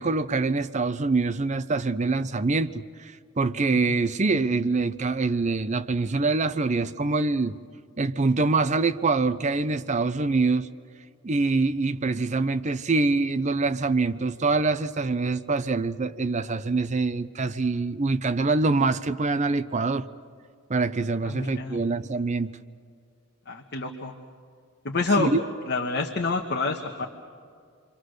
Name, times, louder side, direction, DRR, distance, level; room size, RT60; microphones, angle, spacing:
voice 1, 0.0-7.6 8.0-10.7 11.2-20.1 20.7-22.6 25.2-25.4, right 3 dB, 35° right, 0.6 m, -25 dB
voice 2, 21.2-21.8 23.5-24.2 24.8-25.3 25.7-27.1, left 3 dB, 50° left, 1.3 m, -27 dB
29.0 x 24.0 x 6.5 m
head